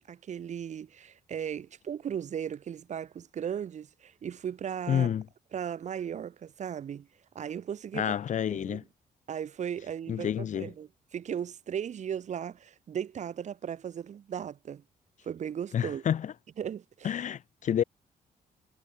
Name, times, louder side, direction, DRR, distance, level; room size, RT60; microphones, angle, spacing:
voice 1, 0.0-5.1 5.5-7.1 7.3-8.1 8.5-8.8 9.3-14.8 15.2-16.0 16.6-17.1, right 8 dB, 50° right, 4.8 m, -36 dB
voice 2, 4.9-5.3 7.9-8.8 10.1-10.7 15.7-16.3 17.0-17.8, left 9 dB, 50° left, 2.2 m, -29 dB
wide cardioid pair, 175°, 16 cm